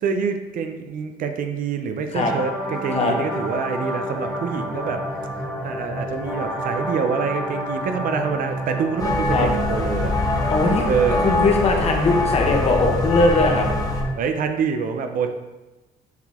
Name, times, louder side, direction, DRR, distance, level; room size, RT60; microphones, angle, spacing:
voice 1, 0.0-5.0 5.6-9.4 9.7-10.1 10.9-11.4 14.2-15.3, right 6 dB, 55° right, 7 dB, 0.6 m, -26 dB
sound 1, 2.2-14.1, equal, ahead, 1.5 m, -29 dB
sound 2, 9.0-14.0, left 2 dB, 20° left, 0.9 m, -24 dB
voice 2, 10.5-13.7, left 3 dB, 35° left, 1 dB, 1.2 m, -20 dB
7.3 x 3.9 x 3.6 m, 1.1 s
cardioid pair, 110°, 17 cm